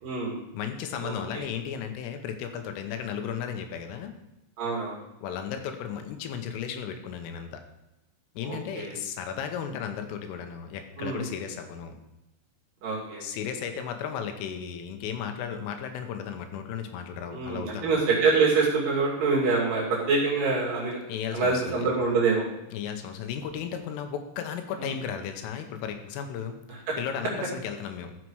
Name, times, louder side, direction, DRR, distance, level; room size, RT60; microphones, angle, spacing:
voice 1, 0.0-0.4 1.0-1.4 4.6-5.0 8.4-9.0 11.0-11.2 12.8-13.3 17.3-21.0 21.3-22.5 24.8-24.9 26.9-27.0, right 4 dB, 50° right, -4 dB, 3.6 m, -25 dB
voice 2, 0.5-4.1 5.2-7.6 8.4-12.0 13.2-17.9 21.1-21.9 22.7-28.1, left 8 dB, 85° left, 6 dB, 3.6 m, -35 dB
13.5 x 6.8 x 4.8 m, 0.94 s
omnidirectional pair, 5.6 m